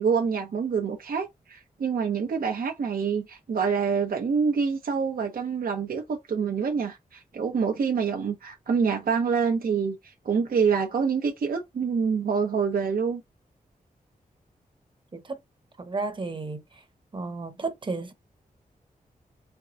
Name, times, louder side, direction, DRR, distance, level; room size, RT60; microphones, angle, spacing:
voice 1, 0.0-10.0 10.2-13.2, right 6 dB, 75° right, 0.8 m, -26 dB
voice 2, 15.8-16.6 17.1-18.1, right 3 dB, 35° right, 0.9 m, -32 dB
4.5 x 2.3 x 3.9 m
wide cardioid pair, 85°, 15 cm